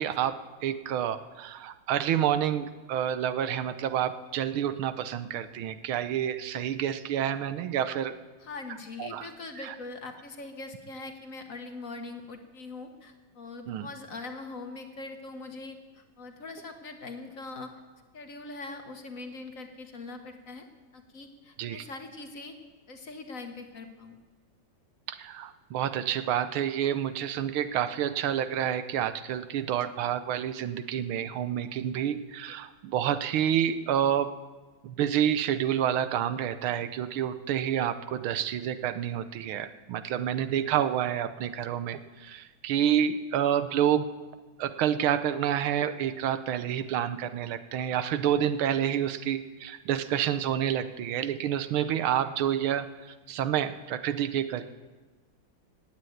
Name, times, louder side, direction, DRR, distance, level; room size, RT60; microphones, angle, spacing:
voice 1, 0.0-8.1 9.0-9.3 9.6-9.7 13.7-13.9 21.6-21.8 25.1-34.3 34.8-44.1 44.6-54.6, right 10 dB, 85° right, 12 dB, 1.7 m, -29 dB
voice 2, 8.4-17.7 18.1-20.7 20.9-22.5 22.9-24.2, left 3 dB, 45° left, 6 dB, 1.3 m, -42 dB
16.5 x 9.1 x 9.2 m, 1.3 s
omnidirectional pair, 2.2 m